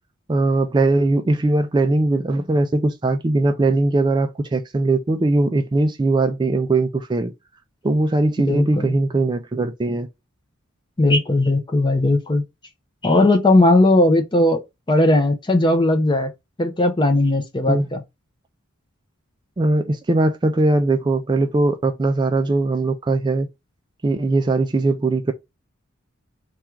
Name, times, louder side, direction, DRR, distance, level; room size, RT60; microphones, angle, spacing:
voice 1, 0.3-7.3 7.8-10.1 17.7-17.9 19.6-23.5 24.0-25.3, right 2 dB, 20° right, 0.3 m, -20 dB
voice 2, 8.4-8.9 11.0-12.4 13.0-14.6 14.9-16.3 16.6-18.0, left 2 dB, 25° left, 0.6 m, -17 dB
3.5 x 2.4 x 4.4 m
head